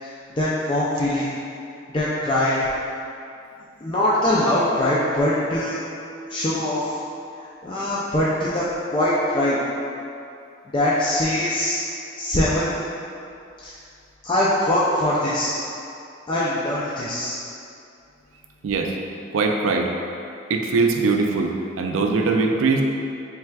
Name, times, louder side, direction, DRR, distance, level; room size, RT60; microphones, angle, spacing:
voice 1, 0.0-1.3 1.9-2.7 3.8-5.8 6.3-7.0 7.4-8.6 8.9-9.6 10.7-11.8 12.2-12.8 13.6-13.7 14.2-15.5 16.3-17.4, left 1 dB, 25° left, -8 dB, 0.3 m, -22 dB
voice 2, 19.3-19.9 20.5-22.8, right 4 dB, 90° right, 2 dB, 0.4 m, -21 dB
4.6 x 3.2 x 2.2 m, 2.6 s
head